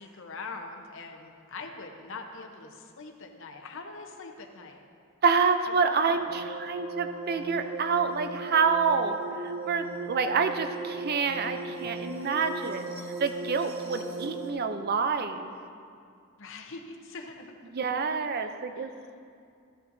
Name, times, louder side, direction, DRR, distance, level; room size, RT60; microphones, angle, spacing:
voice 1, 0.0-4.8 5.8-6.3 16.4-17.9 18.4-19.1, left 3 dB, 55° left, 3 dB, 0.8 m, -43 dB
voice 2, 5.2-12.9 13.2-15.5 17.7-18.9, right 5 dB, 45° right, 8 dB, 0.5 m, -27 dB
sound 1, 6.3-14.5, right 2 dB, 70° right, 1.3 m, -37 dB
14.5 x 8.6 x 2.7 m, 2.4 s
head